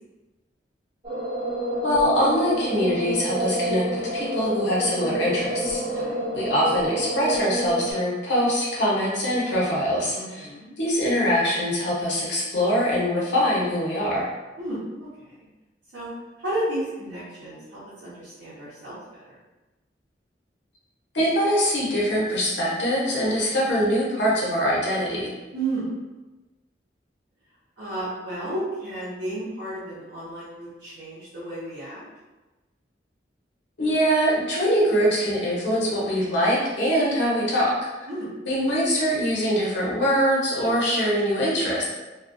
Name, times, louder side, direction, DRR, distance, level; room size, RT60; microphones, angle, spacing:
sound 1, 1.0-7.9, equal, 30° right, 0.6 m, -28 dB
voice 1, 1.8-6.0 6.3-10.5 10.8-14.3 21.1-25.3 33.8-37.9 38.5-41.8, equal, 85° left, -5 dB, 0.8 m, -23 dB
voice 2, 5.8-6.3 10.1-10.7 14.6-15.1 15.4-15.5 15.9-16.1 16.4-19.0 19.2-19.3 23.6-23.7 25.5-25.9 27.8-32.0 38.1-38.3, right 1 dB, 65° right, -11 dB, 0.7 m, -32 dB
2.2 x 2.2 x 2.5 m, 1.1 s
head